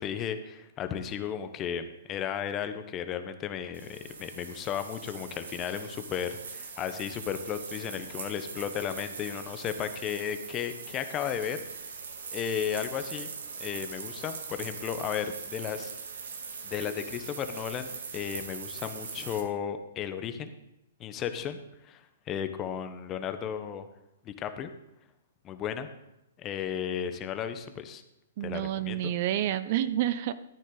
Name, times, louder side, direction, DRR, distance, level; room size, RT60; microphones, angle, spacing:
voice 1, 0.0-11.6 12.3-13.3 13.6-15.9 16.6-20.5 21.0-21.6 21.8-22.0 22.3-23.9 24.2-24.7 25.4-25.9 26.4-28.0 28.4-29.1, left 8 dB, 25° left, 9 dB, 1.1 m, -34 dB
sound 1, 3.7-19.4, right 5 dB, 70° right, 1.8 m, -41 dB
voice 2, 28.4-30.3, right 12 dB, 50° right, 14 dB, 0.6 m, -29 dB
14.0 x 9.2 x 4.0 m, 0.89 s
hypercardioid pair, 125°, 0 cm